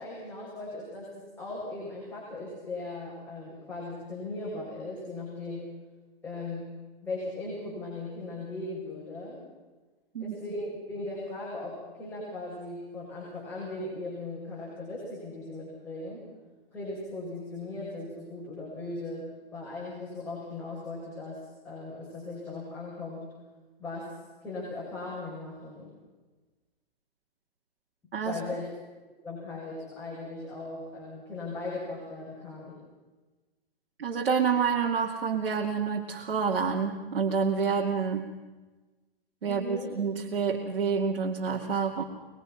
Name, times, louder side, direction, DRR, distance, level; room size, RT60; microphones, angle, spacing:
voice 1, 0.0-5.7 6.2-6.7 7.0-9.4 10.2-16.2 16.7-23.3 23.8-24.1 24.4-25.9 28.2-28.7 29.2-32.8 39.5-39.9, left 2 dB, 5° left, -8 dB, 7.0 m, -38 dB
voice 2, 34.0-38.3 39.4-42.0, right 6 dB, 85° right, 0 dB, 2.6 m, -28 dB
24.0 x 22.5 x 5.9 m, 1.2 s
hypercardioid pair, 155°, 29 cm